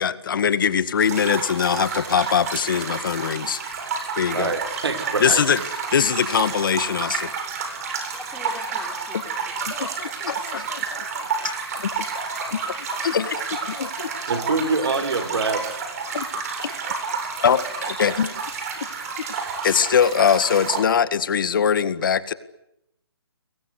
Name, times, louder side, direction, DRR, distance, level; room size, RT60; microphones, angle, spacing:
voice 1, 0.0-3.6 4.2-4.5 5.2-5.6 5.9-7.3 9.1-9.2 9.6-14.1 16.1-18.5 18.8-19.4 19.6-22.3, left 7 dB, 55° left, 14 dB, 1.9 m, -23 dB
sound 1, 1.0-20.8, right 5 dB, 35° right, 7.8 m, -30 dB
voice 2, 4.3-5.4 14.3-15.6, right 4 dB, 75° right, 7 dB, 6.4 m, -24 dB
voice 3, 8.1-9.5, left 1 dB, 5° left, 4 dB, 4.2 m, -42 dB
29.5 x 22.5 x 8.3 m, 0.81 s
hypercardioid pair, 160°, 13 cm